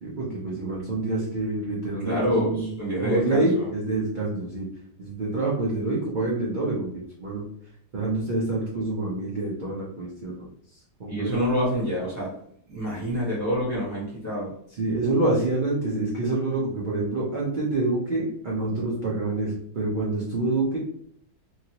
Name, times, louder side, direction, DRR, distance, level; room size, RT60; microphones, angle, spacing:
voice 1, 0.0-2.7 3.0-4.7 5.0-7.4 7.9-11.4 14.8-20.8, right 2 dB, 50° right, -5 dB, 0.6 m, -27 dB
voice 2, 2.0-3.7 11.1-12.3 12.7-14.5, equal, 10° left, -7 dB, 1.0 m, -27 dB
2.9 x 2.5 x 2.8 m, 0.65 s
omnidirectional pair, 1.7 m